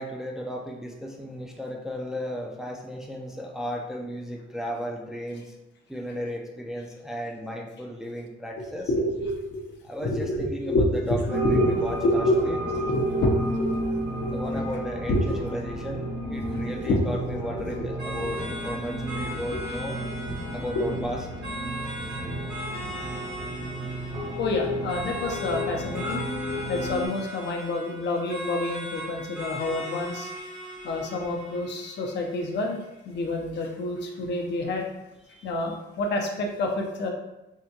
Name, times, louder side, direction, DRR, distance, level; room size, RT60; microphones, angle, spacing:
voice 1, 0.0-5.5 5.9-8.9 9.8-12.6 14.2-20.0 20.5-21.2 35.3-35.5, equal, ahead, 0 dB, 0.4 m, -35 dB
voice 2, 8.9-9.6 10.0-13.9 14.2-14.6 15.1-15.4 16.8-17.0 17.5-17.9 24.4-26.2 26.7-30.3 30.8-32.8 33.0-34.9 35.4-37.1, left 1 dB, 60° left, 1 dB, 0.6 m, -27 dB
sound 1, 11.3-27.1, right 1 dB, 90° right, 1.2 m, -32 dB
sound 2, 18.0-33.0, right 1 dB, 60° right, 0.9 m, -39 dB
3.6 x 2.2 x 2.8 m, 0.94 s
cardioid pair, 90°, 20 cm